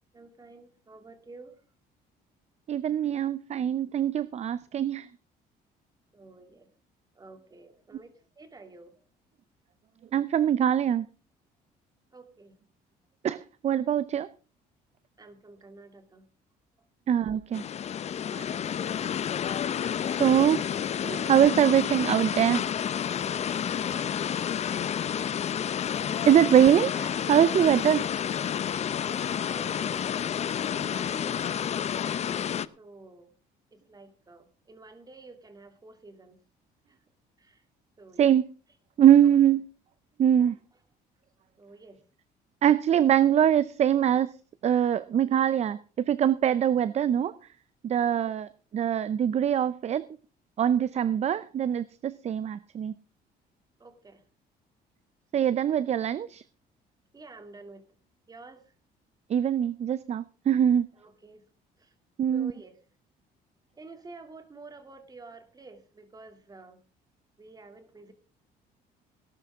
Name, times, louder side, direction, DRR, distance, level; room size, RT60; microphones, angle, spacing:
voice 1, 0.1-1.6 6.1-6.7 7.1-9.0 12.1-12.5 15.2-16.2 20.1-20.3 23.8-25.0 26.2-26.5 29.1-32.1 32.8-33.3 33.7-36.4 36.9-37.0 37.4-37.6 38.0-38.3 39.2-39.3 41.6-42.0 50.7-50.9 53.8-54.2 55.4-55.7 57.1-57.9 58.3-58.7 61.0-61.4 61.8-61.9 62.3-62.8 63.7-66.8 67.4-68.1, right 3 dB, 20° right, 7 dB, 2.7 m, -50 dB
voice 2, 2.7-5.1 10.1-11.1 13.2-14.3 17.1-17.6 18.3-18.5 20.2-20.6 21.0-22.6 26.3-28.1 38.2-38.5 39.0-39.6 40.2-40.6 42.6-44.3 44.6-47.3 47.8-50.0 50.6-52.9 55.3-56.4 59.3-60.9 62.2-62.5, right 10 dB, 40° right, 17 dB, 0.6 m, -23 dB
sound 1, 17.5-32.7, left 9 dB, 40° left, 0.6 m, -30 dB
18.0 x 11.5 x 3.6 m, 0.36 s
cardioid pair, 110°, 17 cm